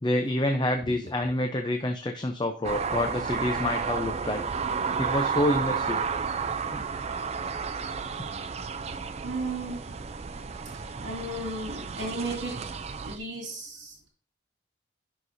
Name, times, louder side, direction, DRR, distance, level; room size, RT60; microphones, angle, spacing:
voice 1, 0.0-6.1 6.5-6.8, left 1 dB, 25° left, 5 dB, 0.6 m, -28 dB
sound 1, 2.6-13.2, right 5 dB, 35° right, 0.4 m, -32 dB
voice 2, 9.2-9.8 10.6-14.1, right 2 dB, 70° right, 0 dB, 2.4 m, -35 dB
12.5 x 6.0 x 2.7 m, 0.38 s
head